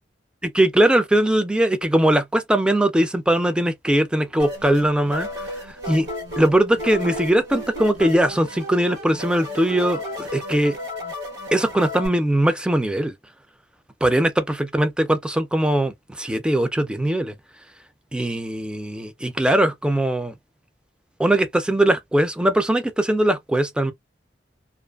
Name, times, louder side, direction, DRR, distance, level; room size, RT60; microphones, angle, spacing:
voice 1, 0.4-5.3 5.9-6.1 6.4-10.8 11.5-13.1 14.0-17.3 18.1-20.3 21.2-23.9, right 1 dB, 5° right, 0.3 m, -20 dB
sound 1, 4.4-12.1, left 1 dB, 65° right, 1.2 m, -33 dB
2.5 x 2.4 x 2.3 m
head